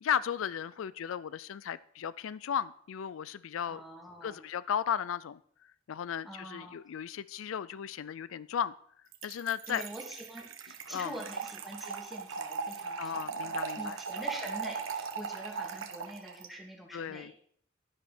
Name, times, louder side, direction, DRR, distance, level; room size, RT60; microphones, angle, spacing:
voice 1, 0.0-3.8 4.2-8.7 9.2-9.8 10.9-11.2 13.0-14.0 16.9-17.3, left 8 dB, 80° left, 18 dB, 0.4 m, -35 dB
voice 2, 3.7-4.4 6.3-6.8 9.7-17.3, right 1 dB, ahead, -1 dB, 2.4 m, -45 dB
Trickle dribble / Fill (with liquid), 9.1-16.5, right 5 dB, 80° right, 1.2 m, -38 dB
12.0 x 10.5 x 4.3 m, 0.63 s
head